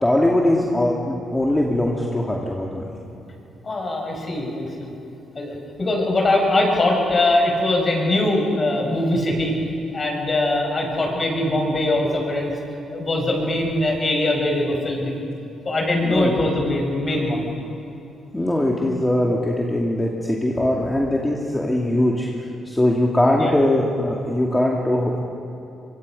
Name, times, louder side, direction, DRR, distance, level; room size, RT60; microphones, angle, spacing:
voice 1, 0.0-2.9 16.0-16.3 18.3-22.3 22.6-25.2, left 1 dB, 10° left, -2 dB, 2.4 m, -21 dB
voice 2, 3.6-4.9 5.3-9.6 9.9-12.5 12.9-15.2 15.6-17.5 20.6-20.7 23.4-23.6, left 1 dB, 35° left, 0 dB, 6.6 m, -22 dB
24.5 x 23.0 x 5.4 m, 3.0 s
cardioid pair, 90°, 0 cm